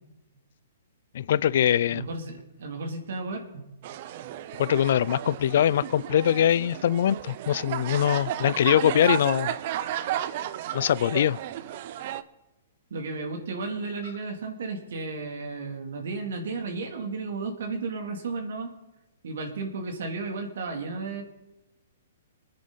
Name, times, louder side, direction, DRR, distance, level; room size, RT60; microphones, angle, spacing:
voice 1, 1.1-2.1 4.6-9.6 10.7-11.4, left 10 dB, 60° left, 0.4 m, -23 dB
voice 2, 1.9-2.3 2.6-3.7 8.4-8.5 12.9-18.7 19.2-21.2, right 3 dB, 70° right, 2.8 m, -33 dB
sound 1, 3.8-12.2, right 11 dB, 50° right, 0.7 m, -33 dB
22.5 x 9.6 x 4.1 m
hypercardioid pair, 140°, 0 cm